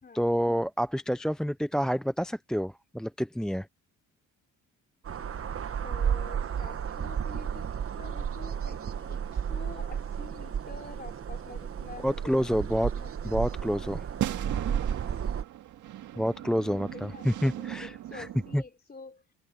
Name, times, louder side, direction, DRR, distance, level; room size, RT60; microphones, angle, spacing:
voice 1, 0.1-3.7 12.0-12.9 13.2-14.0 16.2-18.3 18.5-18.6, equal, ahead, 0.6 m, -28 dB
sound 1, 5.0-15.4, right 8 dB, 45° right, 1.3 m, -33 dB
voice 2, 5.8-7.7 8.0-12.7 13.0-13.5 16.2-19.2, left 4 dB, 30° left, 3.7 m, -48 dB
sound 2, 13.3-13.5 13.8-13.9 14.2-18.6, right 13 dB, 80° right, 2.1 m, -37 dB
cardioid pair, 90°, 30 cm